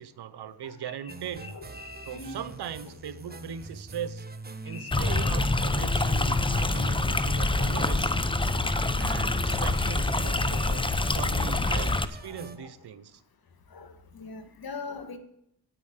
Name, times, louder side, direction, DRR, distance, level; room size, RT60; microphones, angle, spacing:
voice 1, 0.0-1.5 2.1-4.2 4.6-8.3 8.9-10.8 11.2-13.2, right 8 dB, 75° right, 13 dB, 0.9 m, -39 dB
voice 2, 0.6-2.4 2.9-3.0 3.3-3.4 4.7-6.0 6.6-6.8 8.5-11.0 11.4-11.7 12.2-12.7 13.7-15.2, left 4 dB, 65° left, 9 dB, 1.7 m, -44 dB
sound 1, 1.1-12.6, right 2 dB, 25° right, 1.1 m, -44 dB
Stream, 4.9-12.0, left 2 dB, 15° left, 0.7 m, -26 dB
9.4 x 9.1 x 6.6 m, 0.74 s
cardioid pair, 70°, 39 cm